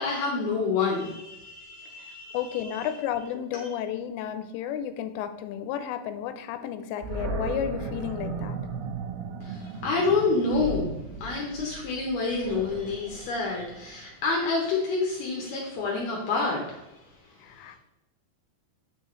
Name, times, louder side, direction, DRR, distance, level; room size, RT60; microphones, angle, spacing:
voice 1, 0.0-3.0 3.6-3.7 9.4-11.0 11.2-16.9 17.2-17.3, left 4 dB, 70° left, -2 dB, 2.7 m, -28 dB
voice 2, 2.3-8.6 17.4-17.8, left 9 dB, 85° left, 9 dB, 2.8 m, -32 dB
Animal, 7.0-14.1, right 4 dB, 85° right, 2.9 m, -36 dB
8.3 x 5.5 x 3.1 m, 0.98 s
omnidirectional pair, 4.9 m